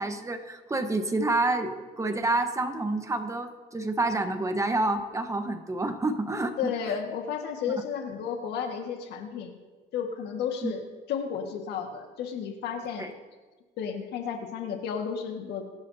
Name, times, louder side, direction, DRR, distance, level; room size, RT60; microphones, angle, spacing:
voice 1, 0.0-6.6 10.6-10.7 13.0-13.1, right 2 dB, 20° right, 6 dB, 1.2 m, -28 dB
voice 2, 6.6-9.5 9.9-13.1 13.8-15.7, left 7 dB, 80° left, 3 dB, 1.8 m, -33 dB
24.5 x 10.5 x 2.8 m, 1.3 s
cardioid pair, 110°, 17 cm